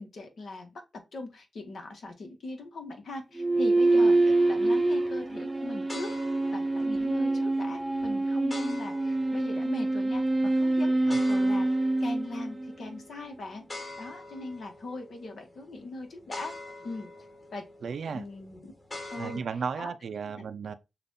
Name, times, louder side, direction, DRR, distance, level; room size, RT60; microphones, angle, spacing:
voice 1, 0.0-6.1 6.5-10.2 10.6-11.7 12.0-13.6 14.0-16.5 16.8-17.1 17.5-17.6 18.1-18.7 19.1-19.4 19.8-19.9 20.4-20.5, left 2 dB, 75° left, 1.4 m, -40 dB
sound 1, 3.4-13.0, right 2 dB, 25° right, 0.6 m, -26 dB
sound 2, 3.8-19.4, left 2 dB, 35° left, 1.8 m, -46 dB
voice 2, 17.8-18.3 19.2-20.7, right 6 dB, 80° right, 0.6 m, -34 dB
6.7 x 2.6 x 2.7 m
cardioid pair, 75°, 0 cm